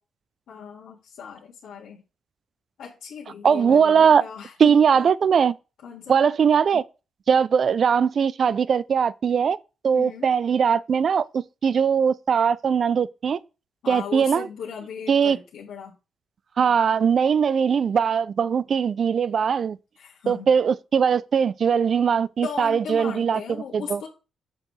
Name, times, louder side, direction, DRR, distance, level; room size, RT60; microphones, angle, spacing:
voice 1, 0.5-2.0 2.8-5.1 5.8-6.2 9.9-10.3 13.8-15.9 20.0-20.5 22.4-24.1, left 7 dB, 85° left, 1.8 m, -37 dB
voice 2, 3.4-4.2 4.6-5.6 6.1-6.8 7.3-9.6 9.8-13.4 13.9-14.5 15.1-15.4 16.6-19.8 20.3-23.4 23.7-24.0, right 7 dB, 40° right, 0.3 m, -20 dB
7.4 x 6.6 x 3.2 m
wide cardioid pair, 175°, 0 cm